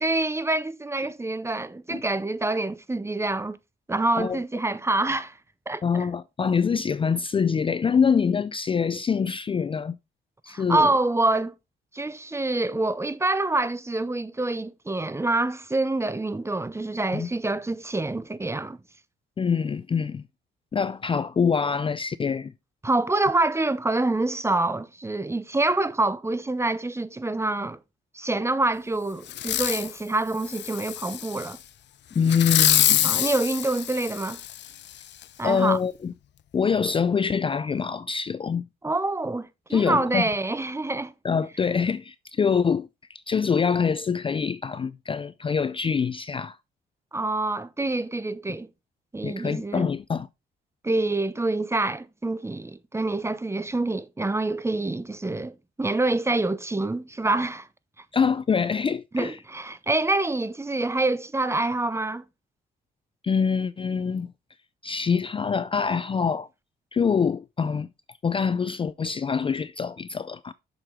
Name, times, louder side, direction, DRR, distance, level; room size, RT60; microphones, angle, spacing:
voice 1, 0.0-3.6 3.9-5.4 5.7-6.1 10.5-11.5 11.9-18.8 22.8-27.8 28.1-31.6 33.0-34.4 35.4-35.8 38.8-41.1 47.1-48.7 49.1-49.9 50.8-57.7 59.1-62.2, right 2 dB, 15° right, 0.7 m, -26 dB
voice 2, 5.8-10.0 10.4-10.9 17.1-17.3 19.4-20.2 20.7-22.5 32.2-33.1 35.4-36.1 36.5-38.7 39.7-40.2 41.2-46.6 49.2-50.3 58.1-59.4 63.2-64.3 64.8-66.5 66.9-67.9 68.2-70.5, left 6 dB, 25° left, 0.4 m, -25 dB
Fireworks, 29.3-29.9 30.4-31.5 32.3-34.7 35.2-35.3, left 11 dB, 60° left, 0.6 m, -25 dB
7.8 x 6.5 x 3.6 m
cardioid pair, 90°, 20 cm